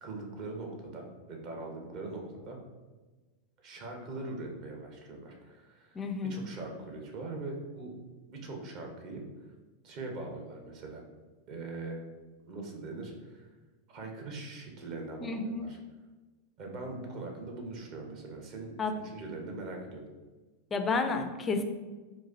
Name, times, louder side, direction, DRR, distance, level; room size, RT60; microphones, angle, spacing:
voice 1, 0.0-2.6 3.6-7.9 8.3-9.2 9.8-11.0 11.5-12.0 12.5-13.5 13.9-15.8 16.6-20.0, right 2 dB, 40° right, 1 dB, 0.7 m, -41 dB
voice 2, 6.0-6.4 15.2-15.6 18.8-18.9 20.7-21.6, left 4 dB, 20° left, 6 dB, 0.3 m, -31 dB
4.0 x 2.4 x 2.6 m, 1.3 s
figure-of-eight pair, 90°, 0 cm